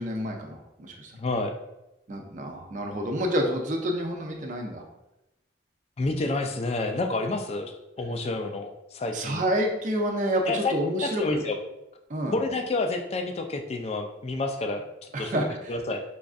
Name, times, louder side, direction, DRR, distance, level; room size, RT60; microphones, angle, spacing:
voice 1, 0.0-1.1 2.1-4.8 9.1-11.4 12.1-12.4 15.1-15.7, equal, 40° right, 1 dB, 0.5 m, -28 dB
voice 2, 1.1-1.6 6.0-7.7 8.0-9.4 10.5-11.6 12.3-14.8 15.2-15.4 15.7-16.0, left 2 dB, 30° left, 5 dB, 0.3 m, -29 dB
5.1 x 2.4 x 2.4 m, 0.94 s
head